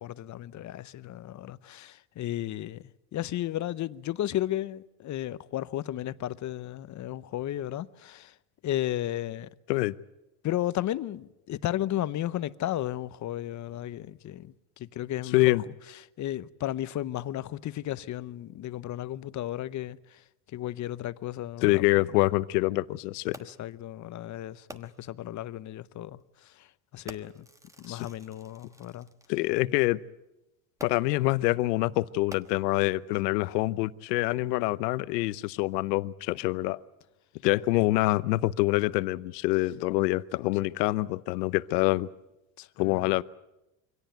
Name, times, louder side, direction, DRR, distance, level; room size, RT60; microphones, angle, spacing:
voice 1, 0.0-8.3 8.6-9.5 10.4-15.7 16.2-20.2 20.5-21.8 23.4-27.5 27.8-29.1 42.6-43.1, left 13 dB, 40° left, 0.8 m, -34 dB
voice 2, 15.3-15.6 21.6-23.4 27.9-28.1 29.3-30.0 30.8-36.8 37.4-42.1 42.8-43.2, left 19 dB, 85° left, 0.9 m, -26 dB
Fireworks, 23.3-23.8 24.7-25.2 26.1-26.2 27.1-29.5 30.8-31.3 32.1-33.0 33.7-33.8, right 1 dB, 5° right, 1.2 m, -49 dB
24.0 x 17.5 x 9.1 m
supercardioid pair, 110°, 47 cm